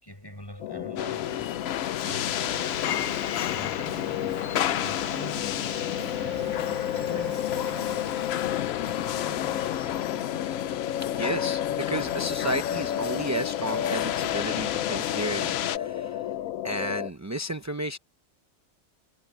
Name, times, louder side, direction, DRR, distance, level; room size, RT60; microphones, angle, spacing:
voice 1, 0.0-1.7 3.4-5.8 6.9-11.0, equal, 15° left, 5.3 m, -45 dB
sound 1, 0.6-17.1, left 11 dB, 80° left, 1.1 m, -32 dB
sound 2, 1.0-15.8, left 11 dB, 65° left, 0.7 m, -32 dB
Domestic sounds home sounds, 1.2-17.0, right 2 dB, 85° right, 4.8 m, -46 dB
voice 2, 11.2-16.3 16.6-18.0, right 1 dB, 20° right, 0.4 m, -32 dB
omnidirectional pair, 1.4 m